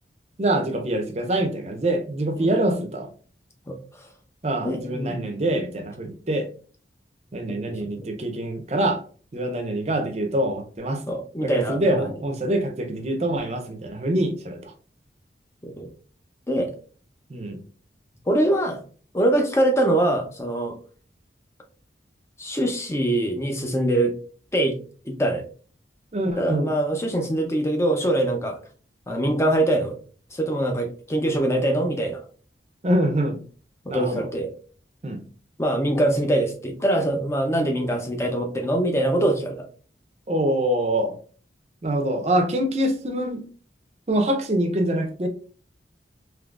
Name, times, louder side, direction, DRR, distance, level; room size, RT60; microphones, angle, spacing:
voice 1, 0.4-3.1 4.4-6.5 7.3-9.0 9.3-11.2 11.4-14.7 17.3-17.6 26.1-26.7 32.8-33.4 33.9-34.3 35.0-35.2 40.3-41.2 41.8-43.4 44.1-45.3, right 1 dB, 35° right, 0.5 m, -25 dB
voice 2, 3.7-4.1 4.6-5.2 7.7-8.1 11.1-12.1 15.6-15.9 16.5-16.7 18.3-18.8 19.1-20.7 22.4-24.1 24.5-24.8 25.0-25.5 26.4-28.6 29.1-30.0 30.3-32.2 33.9-34.5 35.6-39.7, right 1 dB, 15° left, 0.5 m, -23 dB
3.7 x 2.9 x 2.3 m
head